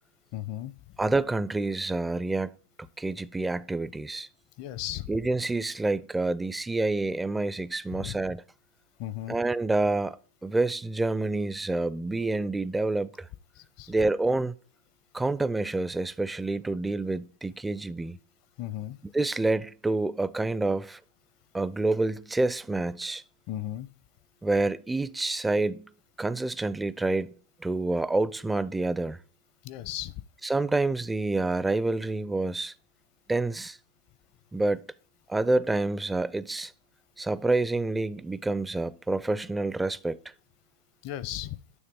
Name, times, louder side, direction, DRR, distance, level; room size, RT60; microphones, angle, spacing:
voice 1, 0.3-0.7 4.6-5.1 7.9-8.1 9.0-9.4 13.6-13.9 18.6-19.0 23.5-23.9 29.6-30.1 41.0-41.6, left 13 dB, 55° left, 0.6 m, -35 dB
voice 2, 1.0-2.5 2.8-4.3 5.1-8.4 9.3-10.2 10.4-13.3 13.9-14.5 15.1-18.2 19.1-21.0 21.5-23.2 24.4-25.9 26.2-27.3 27.6-29.2 30.4-32.7 33.3-33.8 34.5-34.8 35.3-36.7 37.2-40.2, right 2 dB, 10° right, 0.4 m, -28 dB
9.5 x 3.3 x 5.3 m
hypercardioid pair, 105°, 0 cm